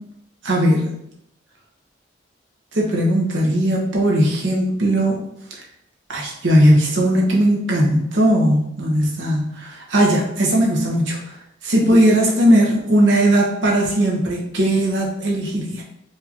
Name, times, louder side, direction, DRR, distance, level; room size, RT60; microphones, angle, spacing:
voice 1, 0.4-0.9 2.7-5.2 6.1-11.2 11.6-15.8, right 1 dB, 80° right, -2 dB, 1.0 m, -18 dB
4.7 x 2.7 x 2.8 m, 0.76 s
head